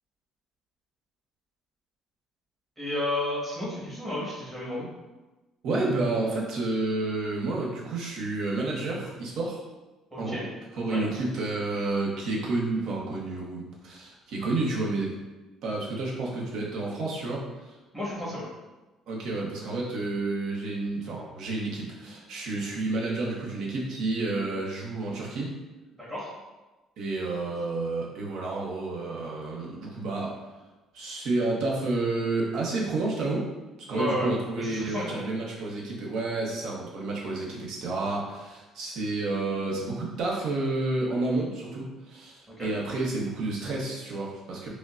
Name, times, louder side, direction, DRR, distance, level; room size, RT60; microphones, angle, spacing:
voice 1, 2.8-4.9 10.1-10.5 10.9-11.2 17.9-18.5 25.9-26.3 33.9-34.3 34.6-35.2 42.5-42.7, left 1 dB, 10° right, -8 dB, 1.4 m, -32 dB
voice 2, 5.6-9.6 10.2-10.4 10.8-15.1 15.6-17.7 19.1-25.5 27.0-30.3 30.9-33.4 33.9-44.7, right 2 dB, 65° right, -3 dB, 0.9 m, -30 dB
5.1 x 2.2 x 2.5 m, 1.1 s
cardioid pair, 135°, 0 cm